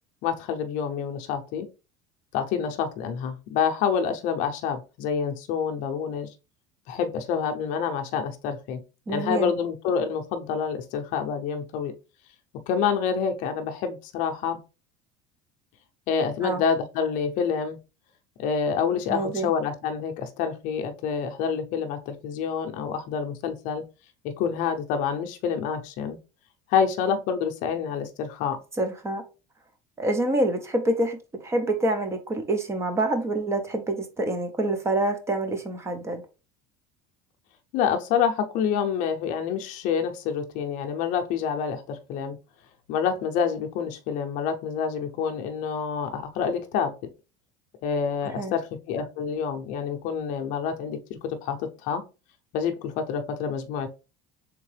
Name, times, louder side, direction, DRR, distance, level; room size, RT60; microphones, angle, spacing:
voice 1, 0.2-1.7 2.3-6.3 6.9-8.8 9.1-11.9 12.7-14.6 16.1-17.8 18.4-23.8 24.2-26.2 26.7-28.6 37.7-42.4 42.9-47.0 47.8-52.0 52.5-53.9, left 7 dB, 55° left, 0.7 m, -27 dB
voice 2, 9.1-9.5 16.4-16.6 19.1-19.5 28.8-29.2 30.0-36.2 48.3-48.5, right 1 dB, 15° right, 0.7 m, -26 dB
3.6 x 3.6 x 3.3 m
cardioid pair, 155°, 16 cm